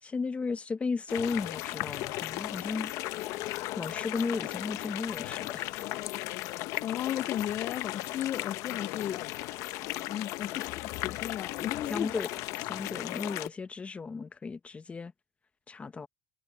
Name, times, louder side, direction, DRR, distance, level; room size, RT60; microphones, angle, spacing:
voice 1, 0.0-2.9 3.7-5.9 11.9-12.3 12.6-15.1 15.7-16.1, left 4 dB, 25° left, 1.3 m, -35 dB
sound 1, 1.1-13.5, left 17 dB, 70° left, 0.9 m, -36 dB
voice 2, 6.8-9.2 10.0-12.1, left 11 dB, 45° left, 0.5 m, -35 dB
cardioid pair, 115°, 6 cm